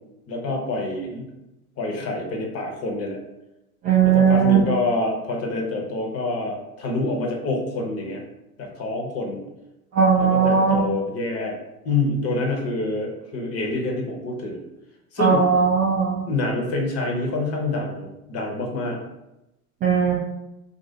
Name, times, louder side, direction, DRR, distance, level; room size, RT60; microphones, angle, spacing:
voice 1, 0.3-1.3 1.8-3.2 4.0-8.2 8.6-9.4 10.2-11.5 11.8-14.6 15.1-15.4 16.2-19.0, left 2 dB, 30° left, 1 dB, 0.8 m, -26 dB
voice 2, 3.8-4.6 9.9-10.8 15.2-16.2 19.8-20.1, right 6 dB, 20° right, -4 dB, 0.3 m, -18 dB
3.0 x 2.5 x 2.7 m, 0.92 s
hypercardioid pair, 85°, 46 cm